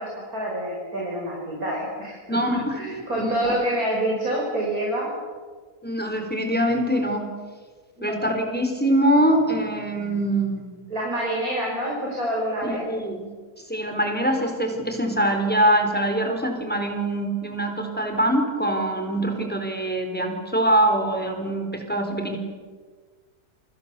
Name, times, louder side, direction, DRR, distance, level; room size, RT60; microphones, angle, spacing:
voice 1, 0.0-2.4 2.8-5.1 8.0-8.2 10.9-12.9, right 1 dB, 65° right, -3 dB, 6.4 m, -27 dB
voice 2, 2.3-2.8 3.2-3.5 5.8-7.3 8.0-10.7 12.6-13.3 13.7-22.4, right 1 dB, 5° left, 3 dB, 4.3 m, -23 dB
30.0 x 25.0 x 7.0 m, 1.5 s
omnidirectional pair, 1.6 m